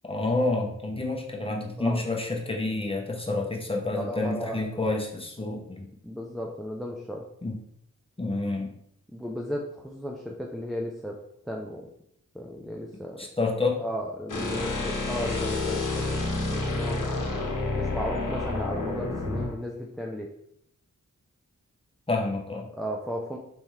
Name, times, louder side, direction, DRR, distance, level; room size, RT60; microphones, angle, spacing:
voice 1, 0.0-5.9 7.4-7.6 8.2-8.7 13.2-13.8 22.1-22.7, left 2 dB, 15° left, 0 dB, 0.9 m, -28 dB
voice 2, 3.9-4.9 6.0-7.3 9.1-11.2 11.5-11.9 12.3-13.3 13.8-16.2 16.5-17.2 17.8-20.3 22.7-23.4, equal, ahead, 0 dB, 0.5 m, -35 dB
sound 1, 14.3-19.5, left 2 dB, 70° left, 1.1 m, -29 dB
4.4 x 3.4 x 3.2 m, 0.73 s
wide cardioid pair, 65°, 33 cm